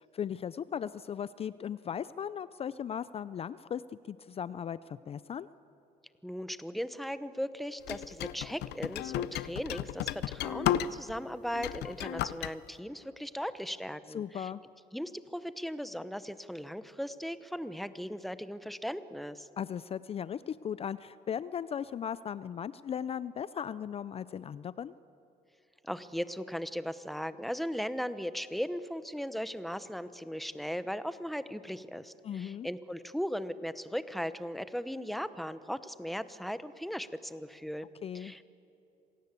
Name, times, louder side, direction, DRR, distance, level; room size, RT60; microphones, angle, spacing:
voice 1, 0.1-3.8 4.1-5.5 14.1-14.6 19.6-24.9 32.2-32.7 38.0-38.3, left 8 dB, 35° left, 17 dB, 0.4 m, -37 dB
voice 2, 6.2-14.5 14.9-19.5 25.8-37.9 38.1-38.4, equal, ahead, 14 dB, 0.9 m, -37 dB
sound 1, 7.9-11.2 11.5-12.5, left 13 dB, 80° left, 0.7 m, -33 dB
26.5 x 18.0 x 8.3 m, 2.9 s
cardioid pair, 110°, 17 cm